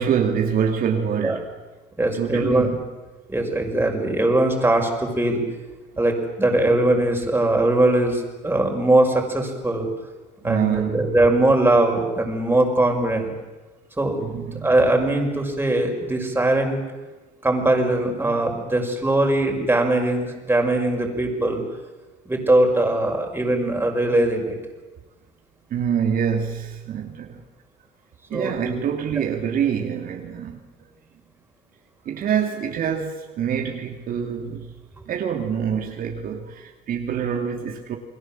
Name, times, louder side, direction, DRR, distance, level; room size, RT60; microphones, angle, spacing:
voice 1, 0.0-1.5 2.0-2.8 10.4-11.2 14.2-14.7 25.7-27.4 28.3-30.6 32.0-34.7 35.1-38.0, right 7 dB, 60° right, 2.7 m, -25 dB
voice 2, 2.0-2.7 3.3-5.4 6.0-9.9 10.4-13.3 14.0-14.2 14.6-16.8 17.4-21.6 22.3-24.6 28.3-28.8, right 1 dB, 10° right, 5.8 m, -21 dB
29.5 x 21.5 x 7.7 m
cardioid pair, 110°, 17 cm